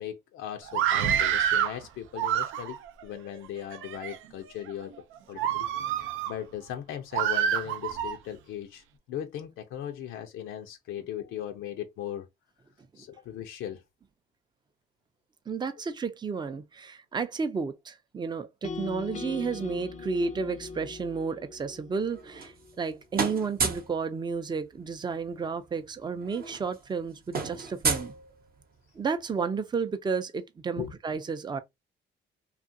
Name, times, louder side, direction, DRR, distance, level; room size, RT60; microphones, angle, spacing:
voice 1, 0.0-2.8 3.0-5.0 5.3-5.7 6.0-12.3 13.0-13.8 30.8-30.9, left 10 dB, 85° left, 0.5 m, -38 dB
Screaming, 0.7-1.8 2.2-2.9 3.6-4.2 4.7-4.9 5.4-6.3 7.1-8.2, right 9 dB, 80° right, 0.5 m, -27 dB
voice 2, 15.5-28.1 29.0-31.6, right 5 dB, 20° right, 0.5 m, -32 dB
sound 1, 18.6-22.8, left 4 dB, 35° left, 0.5 m, -40 dB
sound 2, 22.1-22.9 23.1-24.0 25.3-25.4 25.7-25.9 26.2-28.8, right 5 dB, 50° right, 0.8 m, -32 dB
2.7 x 2.4 x 2.6 m
cardioid pair, 90°, 20 cm